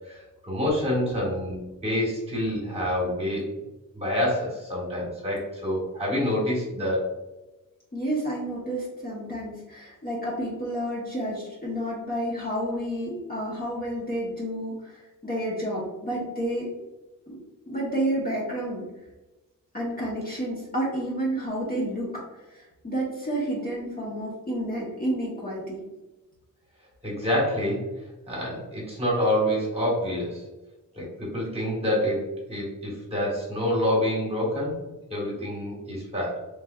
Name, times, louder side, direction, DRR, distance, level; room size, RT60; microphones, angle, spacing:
voice 1, 0.1-3.5 3.9-7.0 27.0-27.9 28.3-30.4 30.9-34.8 35.1-36.4, left 1 dB, 20° right, -5 dB, 1.3 m, -27 dB
voice 2, 7.9-16.7 17.3-17.4 17.7-18.8 19.7-22.2 22.5-25.8, right 1 dB, 25° left, -6 dB, 0.9 m, -30 dB
3.3 x 3.1 x 2.3 m, 1.1 s
wide cardioid pair, 145°, 34 cm